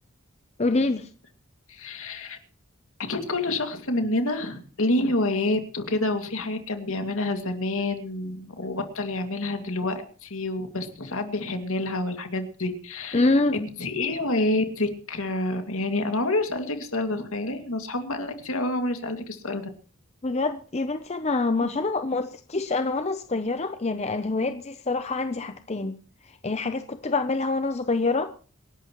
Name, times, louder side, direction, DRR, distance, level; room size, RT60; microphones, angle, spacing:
voice 1, 0.6-1.1 13.1-13.6 20.2-25.9 26.4-28.3, left 3 dB, 30° left, 9 dB, 0.6 m, -26 dB
voice 2, 1.7-2.4 3.0-19.6, left 2 dB, 75° left, 6 dB, 2.3 m, -28 dB
27.0 x 11.5 x 3.1 m, 0.40 s
head